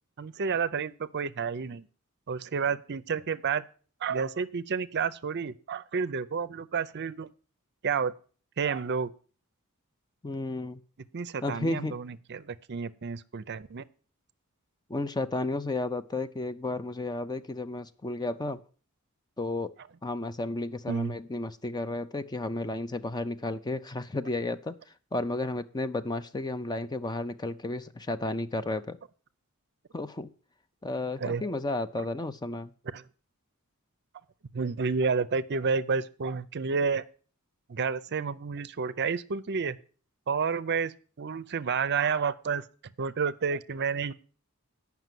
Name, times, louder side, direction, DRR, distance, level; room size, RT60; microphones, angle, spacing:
voice 1, 0.2-1.8 2.3-3.6 4.0-7.3 7.8-8.1 8.6-9.1 11.1-13.8 20.9-21.1 31.2-31.4 32.0-32.1 32.9-33.0 34.5-37.1 37.7-39.8 40.3-42.6 43.0-44.1, right 5 dB, 50° right, 15 dB, 0.5 m, -30 dB
voice 2, 10.2-10.8 11.4-11.9 14.9-18.6 19.4-19.7 20.0-24.7 25.1-29.0 29.9-30.3 30.8-32.7, left 2 dB, 20° left, 11 dB, 0.5 m, -32 dB
9.2 x 5.9 x 7.5 m, 0.40 s
head